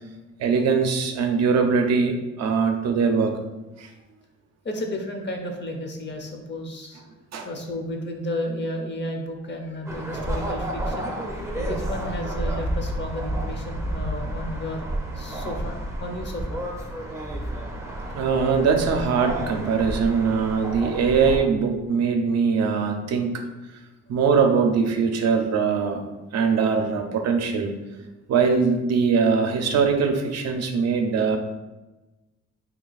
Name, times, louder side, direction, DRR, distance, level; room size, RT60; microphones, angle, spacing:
voice 1, 0.4-3.4 3.8-3.9 7.3-7.5 18.1-23.4 24.1-26.0 26.3-27.8 28.3-31.4, right 5 dB, 60° right, 5 dB, 0.6 m, -22 dB
voice 2, 4.6-7.0 7.4-11.1 11.5-16.6, left 1 dB, 35° left, 3 dB, 0.6 m, -32 dB
sound 1, 9.9-21.4, right 1 dB, 10° right, 0.5 m, -31 dB
2.8 x 2.3 x 4.0 m, 1.1 s
cardioid pair, 90°, 30 cm